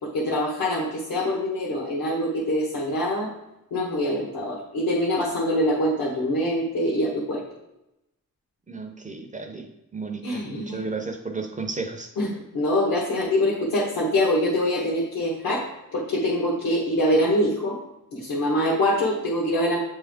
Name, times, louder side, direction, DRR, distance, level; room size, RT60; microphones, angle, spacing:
voice 1, 0.0-3.3 3.7-7.4 10.2-10.9 12.2-15.6 15.9-17.8 18.1-19.8, left 1 dB, 75° left, -4 dB, 1.2 m, -24 dB
voice 2, 8.7-9.7 9.9-12.1, right 4 dB, 20° right, 4 dB, 0.5 m, -33 dB
7.6 x 3.5 x 3.5 m, 0.90 s
wide cardioid pair, 170°, 35 cm